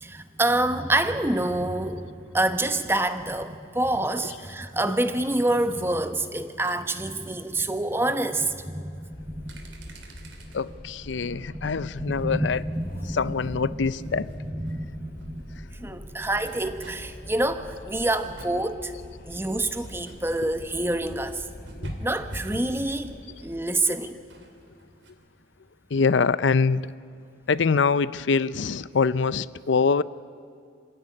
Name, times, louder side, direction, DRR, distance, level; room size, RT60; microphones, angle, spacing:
voice 1, 0.0-9.6 10.2-10.5 10.8-10.9 11.2-11.7 12.0-13.4 13.7-18.9 19.3-21.4 22.0-24.2, right 1 dB, 15° right, 1.1 m, -27 dB
sound 1, 7.5-7.6 8.2-8.3 8.6-8.7 9.3-10.6 11.0-11.5 12.0-14.4 14.7-25.1, equal, 85° right, 3.1 m, -45 dB
Wind, 9.1-24.5, equal, 50° left, 1.8 m, -45 dB
voice 2, 10.5-12.6 13.1-14.3 21.8-21.9 25.9-26.8 27.5-30.0, left 5 dB, 85° left, 0.6 m, -24 dB
26.0 x 16.5 x 9.8 m
head